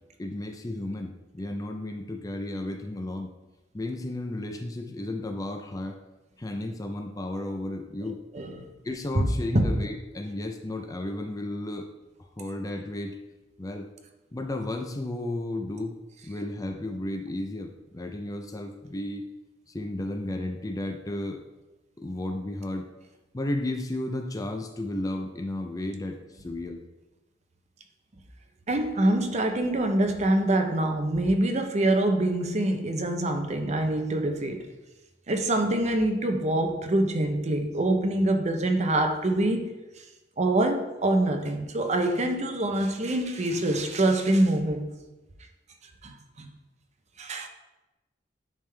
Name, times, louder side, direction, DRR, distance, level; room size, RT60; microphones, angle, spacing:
voice 1, 0.2-3.3 3.7-6.0 6.4-8.2 8.8-11.8 12.4-13.2 13.6-13.8 14.3-15.9 16.2-19.3 19.7-21.4 22.0-22.8 23.3-26.8, left 1 dB, 20° left, 4 dB, 0.5 m, -33 dB
voice 2, 8.0-8.7 9.1-9.2 9.5-9.6 28.7-34.7 35.3-39.7 40.4-44.9 46.0-46.5 47.2-47.5, right 1 dB, 40° right, 5 dB, 0.7 m, -25 dB
10.0 x 3.5 x 3.3 m, 1.0 s
head